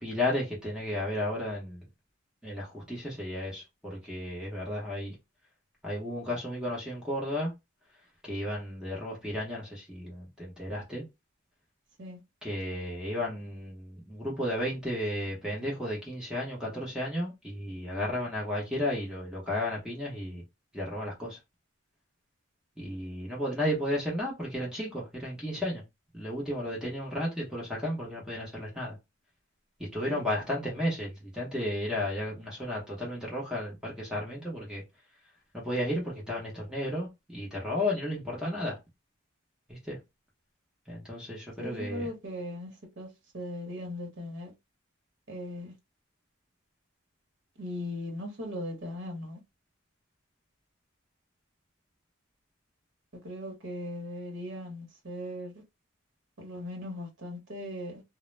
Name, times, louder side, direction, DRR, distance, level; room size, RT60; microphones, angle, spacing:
voice 1, 0.0-1.9 2.4-5.2 5.8-7.5 8.2-11.0 12.4-20.4 20.7-21.4 22.8-25.8 26.1-29.0 29.8-34.8 35.5-38.8 39.7-40.0 40.9-42.1, left 1 dB, 5° right, 0.7 m, -33 dB
voice 2, 41.6-43.1 43.3-44.5 45.3-45.7 47.6-49.4 53.2-55.6 56.4-58.0, left 1 dB, 60° right, 0.9 m, -38 dB
2.1 x 2.0 x 3.1 m
head